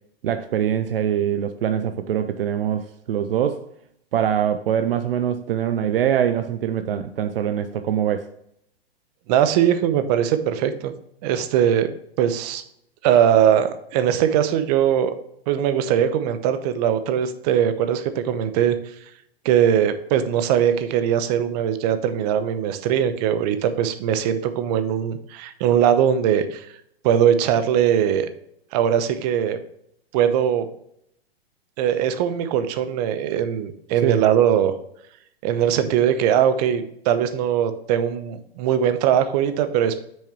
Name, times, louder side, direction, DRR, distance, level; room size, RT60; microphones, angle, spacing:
voice 1, 0.2-3.7 4.1-8.3 34.0-34.2, right 9 dB, 60° right, 9 dB, 0.7 m, -23 dB
voice 2, 9.3-10.9 11.2-11.9 12.2-12.6 13.0-15.1 15.5-18.8 19.4-26.7 27.0-28.3 28.7-29.6 30.1-30.7 31.8-34.7 35.4-40.0, right 9 dB, 40° right, 10 dB, 0.9 m, -20 dB
8.3 x 6.4 x 3.0 m, 0.72 s
hypercardioid pair, 115°, 31 cm